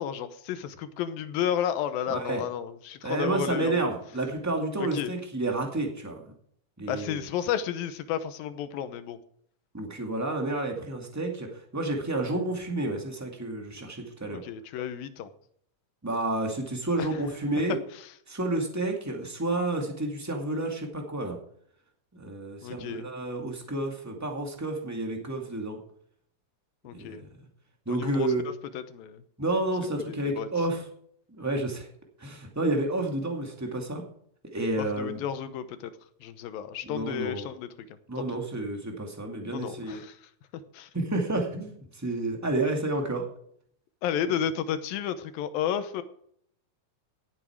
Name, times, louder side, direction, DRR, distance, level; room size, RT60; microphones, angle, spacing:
voice 1, 0.0-3.9 4.8-5.1 6.9-9.2 14.3-15.3 17.0-17.1 17.9-18.1 22.6-23.1 26.8-27.2 27.9-29.2 30.1-30.5 34.8-35.9 36.2-37.7 38.2-38.4 39.5-40.2 40.7-40.9 44.0-46.0, left 9 dB, 85° left, 11 dB, 2.7 m, -32 dB
voice 2, 2.1-2.4 3.0-6.2 6.8-7.2 9.7-14.4 16.0-17.8 18.3-21.4 22.1-25.8 26.9-27.3 27.8-28.4 29.4-30.8 31.4-31.9 32.2-34.0 34.4-35.2 36.8-37.5 38.1-40.0 40.9-43.2, right 2 dB, 5° right, 1 dB, 1.5 m, -30 dB
17.0 x 8.6 x 4.6 m, 0.66 s
omnidirectional pair, 4.0 m